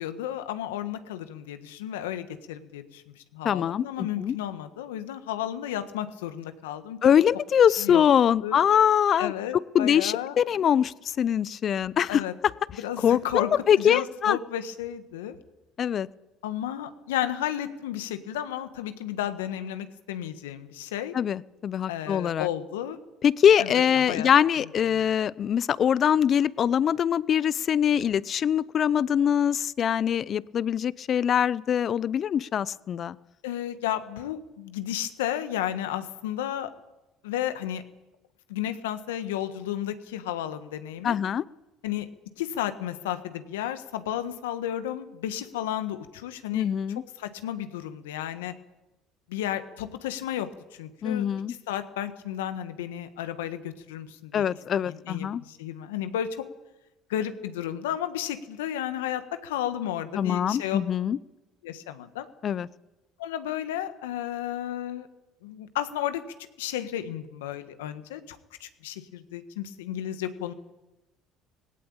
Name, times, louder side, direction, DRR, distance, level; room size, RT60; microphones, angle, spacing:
voice 1, 0.0-7.0 7.8-8.0 8.4-8.6 9.2-10.4 12.1-12.3 12.8-13.5 13.8-15.4 16.4-21.1 21.9-23.0 23.6-24.3 24.9-25.1 33.4-36.7 37.2-37.8 38.5-41.2 41.8-42.1 42.4-46.7 47.2-48.5 49.3-54.5 54.8-56.4 57.1-60.8 61.6-62.3 63.2-65.1 65.4-66.2 66.6-70.5, left 11 dB, 90° left, 10 dB, 1.4 m, -33 dB
voice 2, 3.4-4.4 7.0-9.3 9.7-12.2 13.0-14.4 15.8-16.1 21.1-22.5 23.2-33.2 41.0-41.4 46.5-47.0 51.0-51.5 54.3-55.4 60.2-61.2 62.4-62.7, left 9 dB, 50° left, 20 dB, 0.7 m, -23 dB
18.5 x 17.0 x 8.9 m, 1.0 s
hypercardioid pair, 70°, 0 cm